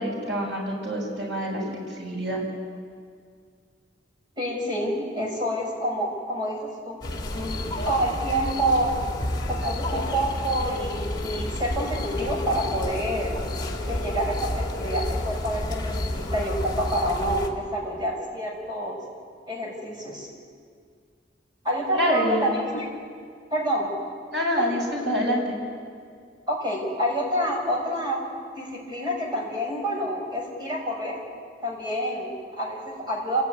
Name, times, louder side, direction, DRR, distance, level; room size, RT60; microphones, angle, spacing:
voice 1, 0.0-2.4 21.9-22.5 24.3-25.6, equal, 85° right, -1 dB, 6.9 m, -27 dB
voice 2, 4.4-7.0 7.3-7.6 7.8-8.9 9.5-13.3 13.9-19.0 19.5-20.3 21.6-22.9 23.5-23.9 24.6-24.7 26.5-28.3 28.5-31.2 31.6-33.4, equal, 25° right, -1 dB, 6.6 m, -28 dB
sound 1, 7.0-17.5, left 1 dB, 25° left, 3.0 m, -30 dB
28.0 x 17.5 x 9.6 m, 2.1 s
head